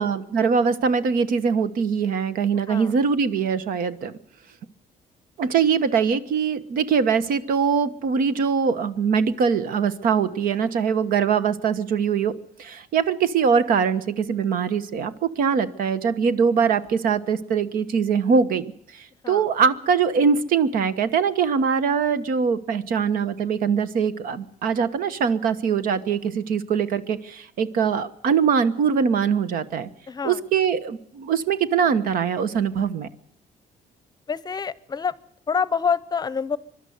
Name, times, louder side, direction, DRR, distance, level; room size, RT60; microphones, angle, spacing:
voice 1, 0.0-4.1 5.4-12.3 12.6-18.7 18.9-29.9 30.2-33.1, right 6 dB, 75° right, 14 dB, 1.3 m, -22 dB
voice 2, 30.1-30.4 34.3-35.1 35.5-36.6, left 6 dB, 25° left, 19 dB, 0.7 m, -26 dB
24.0 x 12.0 x 9.4 m, 0.71 s
cardioid pair, 125°, 15 cm